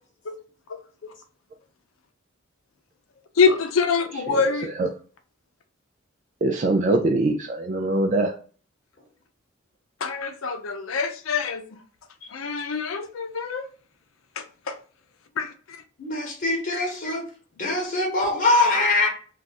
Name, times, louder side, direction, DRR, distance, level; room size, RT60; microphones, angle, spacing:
voice 1, 3.4-4.7 10.0-11.8 12.3-13.7 14.4-14.7 15.4-15.5, left 5 dB, 85° left, 0.5 m, -25 dB
voice 2, 4.3-4.9 6.4-8.3, right 2 dB, 40° right, 0.3 m, -23 dB
voice 3, 16.0-17.2 17.6-19.1, left 2 dB, 45° left, 1.0 m, -22 dB
2.4 x 2.3 x 4.0 m
head